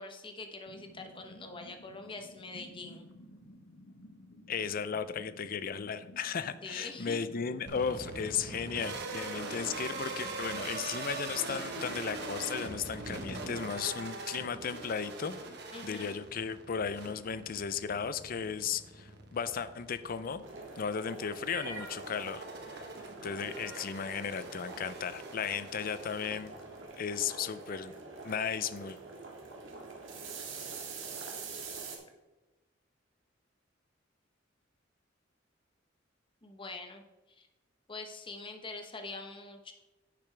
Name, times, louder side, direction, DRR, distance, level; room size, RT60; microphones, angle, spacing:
voice 1, 0.0-3.1 6.6-7.2 15.7-16.1 36.4-37.0 37.4-37.5 37.9-39.7, left 3 dB, 25° left, 5 dB, 1.0 m, -44 dB
sound 1, 0.7-13.3, left 1 dB, 85° left, 1.0 m, -54 dB
voice 2, 4.5-15.4 15.8-20.4 20.8-22.8 23.2-26.5 27.0-27.9 28.2-29.0, left 6 dB, 50° left, 13 dB, 0.5 m, -35 dB
sound 2, 7.7-26.9, right 3 dB, 60° right, 1.3 m, -43 dB
sound 3, 20.4-32.0, right 4 dB, 85° right, 1.7 m, -45 dB
10.0 x 6.9 x 3.4 m, 1.1 s
head